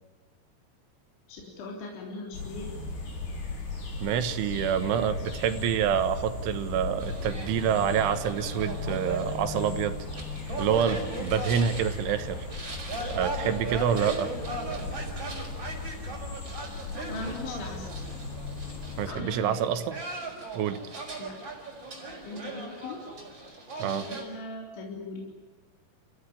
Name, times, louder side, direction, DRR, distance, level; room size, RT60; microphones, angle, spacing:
voice 1, 1.3-2.7 17.1-17.9 19.1-19.7 20.2-20.3 21.2-21.4 22.2-23.0 23.8-25.3, left 2 dB, 75° left, -1 dB, 5.9 m, -39 dB
sound 1, 2.3-19.1, left 3 dB, 60° left, 7.5 m, -37 dB
voice 2, 4.0-10.0 10.6-12.5 13.1-14.3 19.0-20.0 20.5-20.8 23.8-24.1, right 8 dB, 80° right, 10 dB, 3.8 m, -27 dB
sound 2, 7.0-24.2, right 2 dB, 25° right, 5.7 m, -38 dB
30.0 x 16.0 x 10.0 m, 1.3 s
omnidirectional pair, 5.4 m